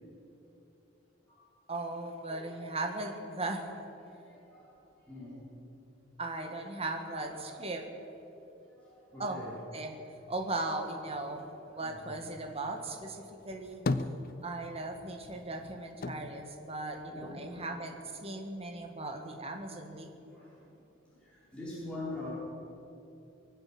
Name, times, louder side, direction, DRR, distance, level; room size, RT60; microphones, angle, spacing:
voice 1, 1.7-3.7 6.2-7.8 9.2-9.4 9.7-9.9 10.3-13.8 14.4-20.4, right 2 dB, 30° right, 3 dB, 1.6 m, -38 dB
voice 2, 2.3-2.6 4.1-5.5 6.7-7.5 8.4-9.6 11.7-12.6 17.1-17.7 18.9-19.4 20.1-22.3, left 2 dB, 5° left, -9 dB, 5.0 m, -46 dB
sound 1, 13.4-14.9 15.2-17.6 17.9-18.8, left 2 dB, 45° left, 0.6 m, -37 dB
23.0 x 7.9 x 7.8 m, 2.9 s
head